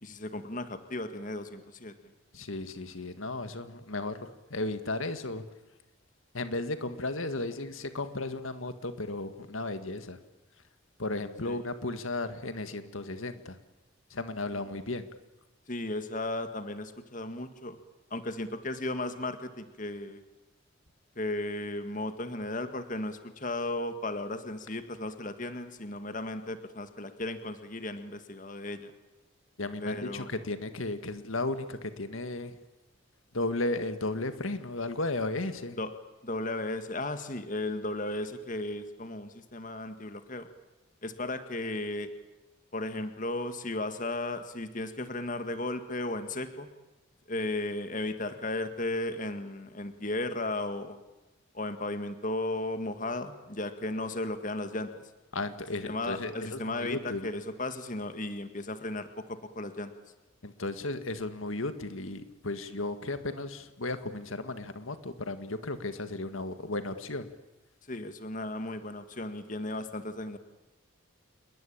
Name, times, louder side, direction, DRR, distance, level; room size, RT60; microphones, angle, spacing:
voice 1, 0.0-2.1 11.4-11.6 15.7-17.8 18.1-20.2 21.2-28.9 29.8-30.3 35.8-35.9 36.2-40.5 41.0-42.1 42.7-46.7 47.3-51.0 51.5-55.0 55.9-59.9 67.9-70.4, left 2 dB, 40° left, 9 dB, 1.9 m, -35 dB
voice 2, 2.3-5.4 6.3-10.2 11.0-13.6 14.1-15.1 29.6-32.6 33.3-35.8 55.3-57.3 60.4-67.3, left 2 dB, 80° left, 10 dB, 1.9 m, -34 dB
28.0 x 22.0 x 8.8 m, 1.0 s
head